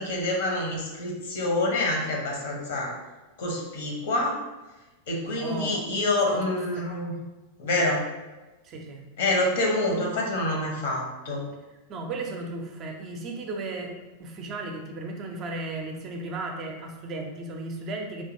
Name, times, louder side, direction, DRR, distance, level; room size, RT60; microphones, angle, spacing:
voice 1, 0.0-2.9 3.4-4.4 5.1-7.1 7.6-8.0 9.2-11.5, left 2 dB, 55° left, -1 dB, 0.9 m, -27 dB
voice 2, 5.3-5.8 6.2-6.9 8.6-9.0 11.9-18.2, right 2 dB, 35° right, 2 dB, 0.5 m, -35 dB
3.6 x 2.8 x 2.6 m, 1.1 s
figure-of-eight pair, 90°, 0 cm